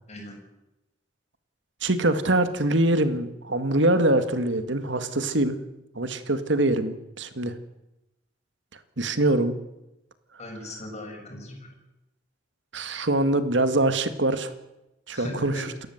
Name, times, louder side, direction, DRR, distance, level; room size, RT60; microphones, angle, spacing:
voice 1, 0.1-0.4 10.4-11.7 15.1-15.7, left 1 dB, 35° left, 0 dB, 7.3 m, -38 dB
voice 2, 1.8-5.6 6.0-7.5 9.0-9.5 12.7-14.5 15.1-15.6, right 1 dB, 70° right, 10 dB, 1.9 m, -23 dB
28.5 x 14.0 x 8.0 m, 0.94 s
head